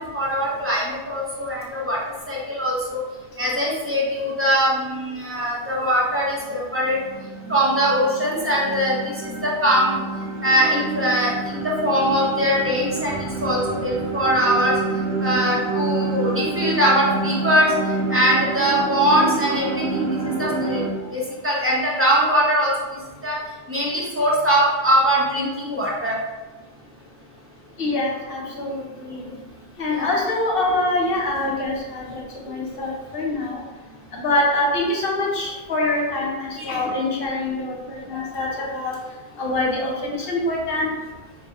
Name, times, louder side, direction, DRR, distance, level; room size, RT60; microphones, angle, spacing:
voice 1, 0.0-2.0 2.3-3.0 3.4-7.0 7.5-8.9 9.4-10.0 10.4-13.1 13.4-14.8 15.2-17.7 18.1-20.1 20.4-20.8 21.1-22.7 23.2-23.4 23.7-26.1 29.9-30.1 36.6-36.7, equal, 15° right, -5 dB, 0.6 m, -21 dB
sound 1, 6.4-20.9, right 3 dB, 90° right, 0.9 m, -28 dB
voice 2, 27.8-29.2 29.8-33.6 34.1-39.0 39.4-40.9, left 2 dB, 65° left, -2 dB, 0.9 m, -24 dB
4.0 x 2.7 x 2.3 m, 1.2 s
omnidirectional pair, 1.0 m